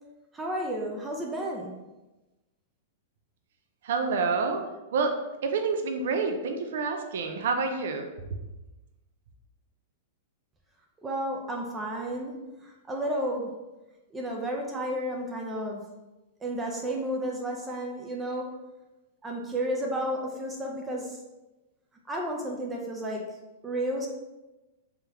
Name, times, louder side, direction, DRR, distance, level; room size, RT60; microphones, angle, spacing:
voice 1, 0.3-1.7 11.0-13.5 14.1-15.8 16.4-18.5 19.2-21.2 22.1-23.2 23.6-24.1, right 1 dB, 10° right, 0 dB, 0.4 m, -32 dB
voice 2, 3.8-4.6 4.9-5.1 5.4-8.1, right 4 dB, 65° right, 5 dB, 0.5 m, -28 dB
3.4 x 3.4 x 2.9 m, 1.1 s
supercardioid pair, 160°, 0 cm